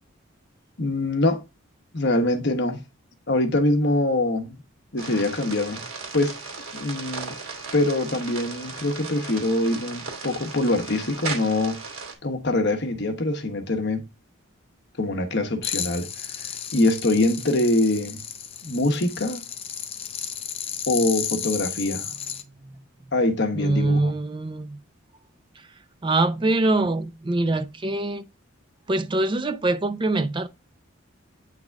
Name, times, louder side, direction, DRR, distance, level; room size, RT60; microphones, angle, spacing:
voice 1, 0.8-1.4 1.9-2.8 3.3-4.6 4.9-5.8 6.1-6.3 6.7-7.3 7.7-11.8 12.2-14.0 15.0-16.1 16.7-18.2 18.6-19.4 20.9-22.1 23.1-24.1, left 2 dB, 55° left, 1.2 m, -24 dB
sound 1, 5.0-12.1, right 4 dB, 85° right, 2.5 m, -36 dB
sound 2, 15.6-22.4, left 8 dB, 30° left, 0.5 m, -33 dB
voice 2, 23.5-24.8 26.0-28.2 28.9-30.5, right 2 dB, 25° right, 0.5 m, -23 dB
9.1 x 3.9 x 3.5 m
head